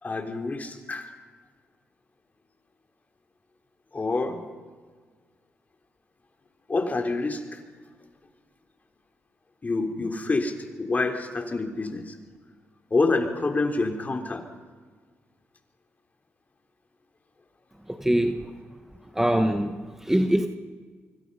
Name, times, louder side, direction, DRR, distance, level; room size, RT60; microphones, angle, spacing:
voice 1, 0.0-1.1 3.9-4.4 6.7-7.6 9.6-12.1 12.9-14.4, left 3 dB, 35° left, 4 dB, 3.8 m, -27 dB
voice 2, 18.0-18.4 19.2-19.7 20.1-20.5, right 1 dB, 10° right, 7 dB, 1.5 m, -22 dB
26.0 x 24.5 x 5.7 m, 1.5 s
supercardioid pair, 65°, 5 cm